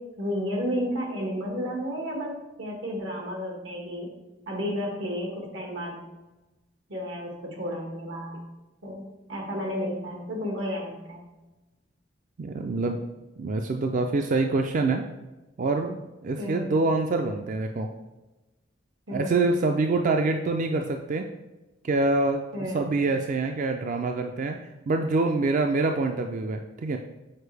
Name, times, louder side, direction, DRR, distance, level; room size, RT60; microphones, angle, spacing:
voice 1, 0.2-4.1 4.5-6.0 6.9-8.4 8.8-11.2 16.4-16.7 19.1-19.4 22.5-22.8, equal, 90° right, 0 dB, 1.7 m, -32 dB
voice 2, 12.4-13.0 13.4-15.1 15.6-17.9 19.1-21.3 21.8-22.4 22.7-24.6 24.9-27.0, right 3 dB, 45° right, 4 dB, 0.3 m, -25 dB
6.6 x 4.5 x 3.3 m, 1.1 s
head